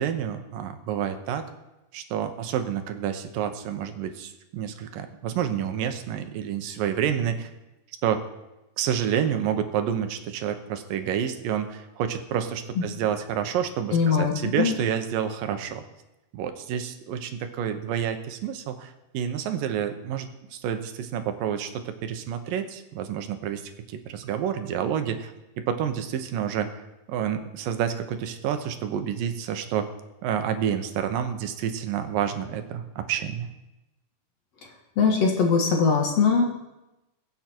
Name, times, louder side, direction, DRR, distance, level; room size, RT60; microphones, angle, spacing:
voice 1, 0.0-1.5 1.9-7.5 8.0-8.3 8.8-15.8 16.3-23.6 23.9-25.3 25.6-26.7 27.1-29.9 30.2-33.5, right 9 dB, 80° right, 8 dB, 2.7 m, -29 dB
voice 2, 13.9-14.7 35.0-36.4, left 5 dB, 55° left, 1 dB, 2.4 m, -21 dB
22.0 x 8.1 x 4.5 m, 0.98 s
omnidirectional pair, 3.9 m